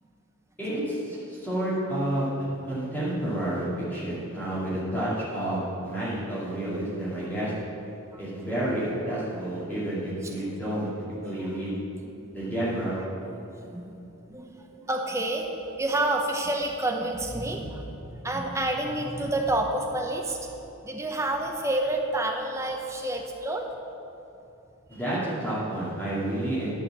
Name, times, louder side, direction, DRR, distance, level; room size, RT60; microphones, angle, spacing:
voice 1, 0.6-7.5 8.2-10.9 11.2-11.7 12.3-13.0 24.9-26.7, right 1 dB, 10° left, -10 dB, 2.4 m, -30 dB
voice 2, 13.6-14.0 14.3-17.8 18.1-20.5 20.8-23.7 24.9-25.0, right 1 dB, 15° right, 1 dB, 0.8 m, -29 dB
11.5 x 5.0 x 7.3 m, 2.9 s
head